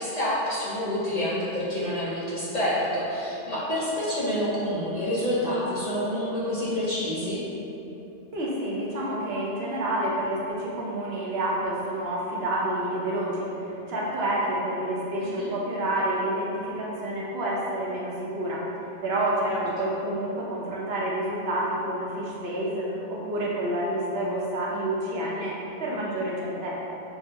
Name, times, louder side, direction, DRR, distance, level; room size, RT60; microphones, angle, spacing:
voice 1, 0.0-7.4 15.2-15.5 19.5-19.9, equal, 40° left, -9 dB, 0.7 m, -28 dB
voice 2, 8.3-18.6 19.0-26.9, right 1 dB, 65° right, -5 dB, 0.9 m, -29 dB
5.9 x 2.1 x 2.7 m, 3.0 s
omnidirectional pair, 1.2 m